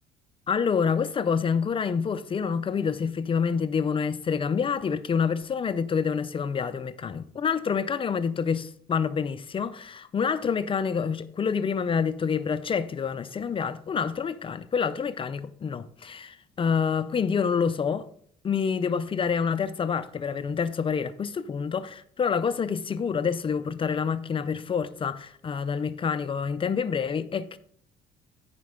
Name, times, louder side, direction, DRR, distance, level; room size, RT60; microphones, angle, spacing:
voice 1, 0.5-18.1 18.4-27.6, left 6 dB, 30° left, 0.5 m, -27 dB
13.5 x 5.2 x 3.7 m
cardioid pair, 110°, 17 cm